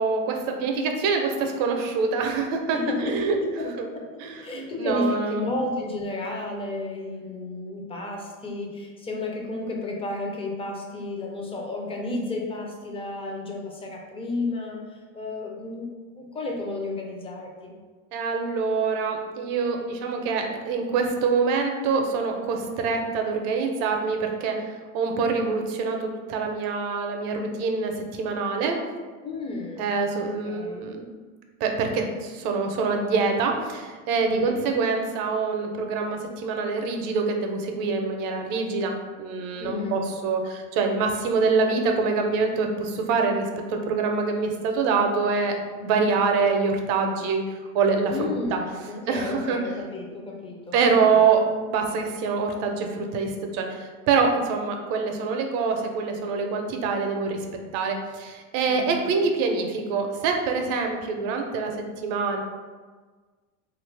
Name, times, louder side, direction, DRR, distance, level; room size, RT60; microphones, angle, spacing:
voice 1, 0.0-2.8 3.0-3.4 3.8-3.9 4.2-5.4 18.1-24.6 24.9-27.9 28.2-28.8 29.8-31.0 31.6-47.4 47.7-48.1 48.5-48.6 49.1-49.6 50.7-57.4 57.7-61.7 62.0-62.4, right 4 dB, 60° right, 3 dB, 0.6 m, -25 dB
voice 2, 2.7-3.6 3.9-17.7 29.2-29.9 30.2-30.9 34.2-34.6 39.6-40.1 48.1-50.8 51.1-51.2 58.7-59.1, left 2 dB, 15° left, 0 dB, 0.4 m, -32 dB
2.9 x 2.5 x 3.2 m, 1.4 s
hypercardioid pair, 95°, 44 cm